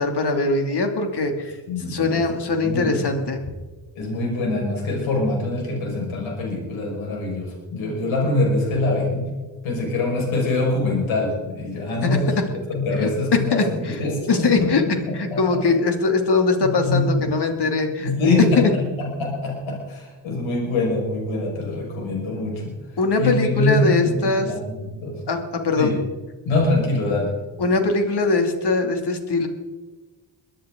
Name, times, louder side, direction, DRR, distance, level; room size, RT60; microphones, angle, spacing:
voice 1, 0.0-1.6 1.9-3.5 12.0-12.2 13.0-13.1 13.5-14.0 14.3-14.8 15.1-18.1 18.6-18.7 23.0-24.5 25.3-26.0 27.6-29.5, left 3 dB, 55° left, 5 dB, 2.9 m, -21 dB
voice 2, 1.7-2.2 2.5-3.1 4.0-9.3 9.6-12.3 12.7-15.6 16.9-17.3 18.0-22.7 23.2-25.2 25.8-26.0 26.4-27.3, left 2 dB, 80° left, -2 dB, 5.7 m, -24 dB
22.5 x 10.0 x 3.9 m, 1.3 s
supercardioid pair, 45°, 47 cm